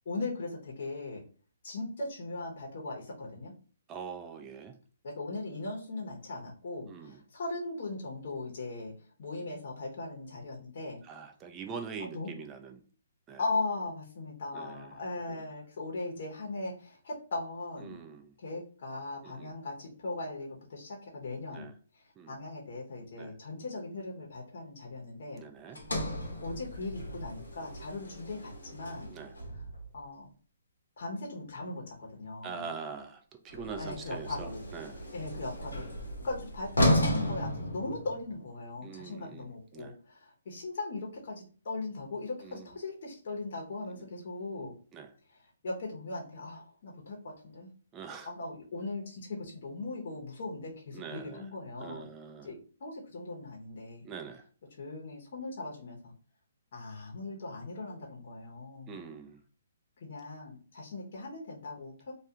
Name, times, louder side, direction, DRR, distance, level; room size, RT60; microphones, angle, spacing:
voice 1, 0.1-1.2 1.6-3.5 5.0-8.9 9.2-11.0 12.0-12.3 13.4-17.9 18.4-21.7 22.3-25.4 26.4-29.1 29.9-30.3 31.0-32.7 33.8-34.6 35.1-35.8 36.2-44.7 45.6-47.7 48.3-52.1 52.4-54.1 54.8-56.1 56.7-59.0 60.0-62.1, left 2 dB, 60° left, -1 dB, 0.8 m, -39 dB
voice 2, 3.9-4.7 6.9-7.2 11.0-12.8 13.3-13.4 14.5-14.9 15.3-15.4 17.8-18.3 19.2-19.5 21.5-21.7 22.2-22.4 23.2-23.3 25.3-25.8 29.1-29.3 32.4-35.0 38.8-39.9 42.4-42.7 43.8-44.1 44.9-45.1 47.9-48.3 50.9-51.5 51.8-52.5 54.0-54.5 58.9-59.4, right 6 dB, 20° right, 5 dB, 0.4 m, -43 dB
Sliding door, 25.7-30.0 33.5-38.4, left 1 dB, 90° left, 0.8 m, -34 dB
2.3 x 2.3 x 2.7 m, 0.40 s
hypercardioid pair, 140°, 0 cm